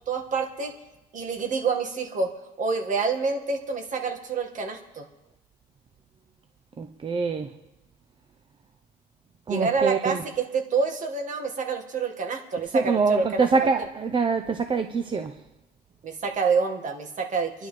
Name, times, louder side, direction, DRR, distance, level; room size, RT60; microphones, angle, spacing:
voice 1, 0.1-0.7 1.1-2.3 2.6-5.0 9.5-13.7 16.0-17.7, right 4 dB, 50° right, 1.8 m, -27 dB
voice 2, 6.8-7.5 9.5-10.2 12.7-15.3, right 4 dB, 30° right, 0.7 m, -24 dB
26.5 x 11.0 x 3.3 m
cardioid pair, 110°, 17 cm